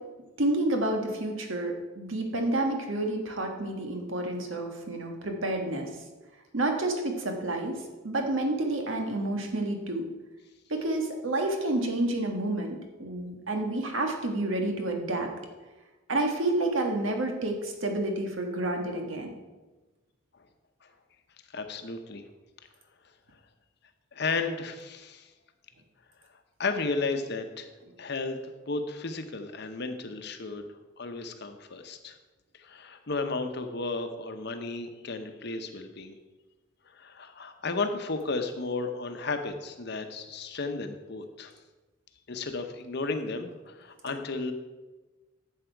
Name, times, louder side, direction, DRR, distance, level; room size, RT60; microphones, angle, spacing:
voice 1, 0.4-6.0 6.5-10.0 10.7-15.3 16.1-19.3, right 2 dB, 80° right, 3 dB, 1.5 m, -29 dB
voice 2, 21.5-22.2 24.1-25.3 26.6-27.7 28.0-30.7 31.0-32.2 32.5-36.2 36.9-41.5 42.3-44.5, left 3 dB, 55° left, 7 dB, 0.9 m, -33 dB
11.5 x 7.5 x 4.6 m, 1.2 s
head